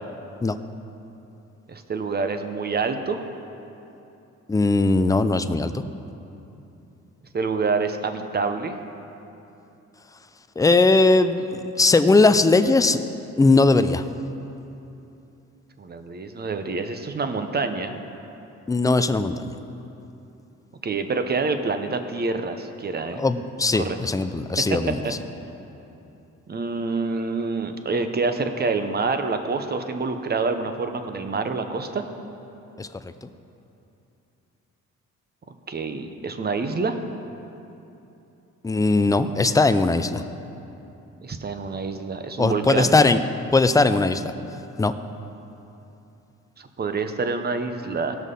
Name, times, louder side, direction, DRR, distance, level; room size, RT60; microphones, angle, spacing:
voice 1, 1.7-3.2 7.3-8.7 15.8-17.9 20.8-23.2 23.7-24.0 24.7-24.8 25.0-25.1 26.5-32.0 35.7-37.0 41.2-43.0 46.6-48.2, right 4 dB, 30° right, 7 dB, 0.9 m, -27 dB
voice 2, 4.5-5.8 10.6-13.0 13.4-14.0 18.7-19.6 23.2-25.0 32.8-32.9 38.6-40.2 42.4-43.2 43.5-44.3 44.8-44.9, left 3 dB, 10° left, 10 dB, 0.4 m, -19 dB
16.5 x 6.2 x 5.4 m, 2.9 s
cardioid pair, 90°, 30 cm